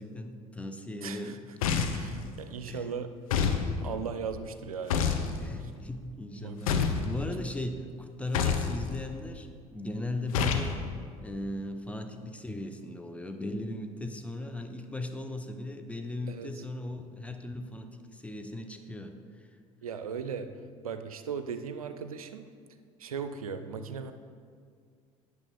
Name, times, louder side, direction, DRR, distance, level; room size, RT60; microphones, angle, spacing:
voice 1, 0.0-1.5 2.0-2.3 2.7-3.0 5.4-10.9 11.2-19.5, left 1 dB, 5° left, 7 dB, 0.7 m, -38 dB
voice 2, 1.0-1.4 1.8-3.1 3.8-5.3 5.6-5.7 6.4-6.9 16.3-16.6 19.8-20.5 20.8-22.5 23.0-24.1, right 6 dB, 90° right, 9 dB, 0.4 m, -38 dB
sound 1, 1.6-2.1 3.3-3.6 4.9-5.3 6.7-7.0 8.3-8.7 10.3-10.7, left 7 dB, 75° left, 0.7 m, -26 dB
9.0 x 6.4 x 4.2 m, 2.1 s
hypercardioid pair, 60°, 18 cm